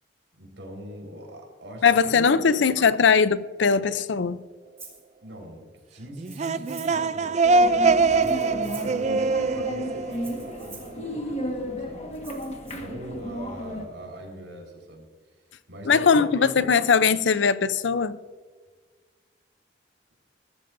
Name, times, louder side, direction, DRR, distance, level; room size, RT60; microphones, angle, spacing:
voice 1, 0.3-2.6 5.2-7.3 7.7-12.1 12.7-15.1 15.7-16.7, equal, 75° right, 4.4 m, -41 dB
voice 2, 1.8-4.4 15.8-18.2, left 6 dB, 70° left, 0.5 m, -20 dB
Rattle (instrument), 4.8-5.0 6.2-7.1 8.1-9.0 10.1-11.0 12.1-12.8, right 4 dB, 15° right, 2.9 m, -47 dB
sound 1, 6.2-10.9, right 3 dB, 35° right, 0.4 m, -23 dB
sound 2, 7.4-13.9, left 1 dB, 35° left, 1.5 m, -34 dB
22.0 x 13.0 x 2.6 m
head